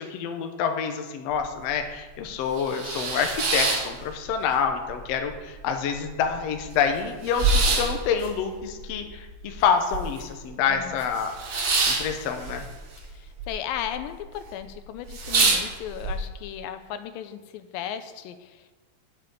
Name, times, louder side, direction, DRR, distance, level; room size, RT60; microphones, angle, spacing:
voice 1, 0.0-11.3 11.9-12.6, left 7 dB, 65° left, 5 dB, 1.8 m, -27 dB
sound 1, 1.3-1.4 1.8-1.9 2.4-4.6 4.9-5.6 6.0-6.1 6.2-10.4 10.7-13.5 13.7-14.3 14.7-14.8 15.1-16.1, right 3 dB, 45° right, 1.5 m, -26 dB
voice 2, 10.7-11.0 13.1-18.7, left 10 dB, 85° left, 10 dB, 2.5 m, -36 dB
9.3 x 7.0 x 8.5 m, 1.3 s
omnidirectional pair, 4.0 m